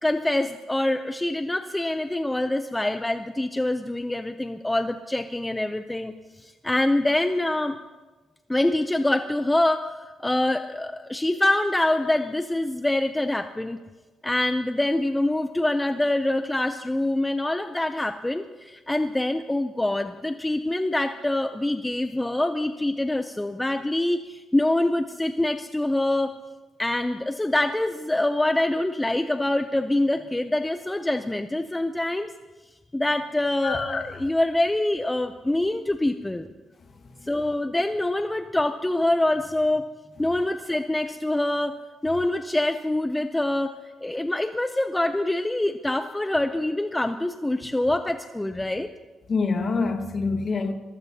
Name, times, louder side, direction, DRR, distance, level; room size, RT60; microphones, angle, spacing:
voice 1, 0.0-6.1 6.4-7.8 8.5-13.8 14.2-26.3 26.8-32.3 32.9-36.5 37.3-39.9 40.2-41.8 42.0-43.7 44.0-48.9, left 1 dB, 10° left, 0.5 m, -25 dB
voice 2, 33.6-34.2 49.3-50.7, left 4 dB, 45° left, 1.6 m, -26 dB
22.5 x 15.0 x 2.8 m
cardioid pair, 90°, 0 cm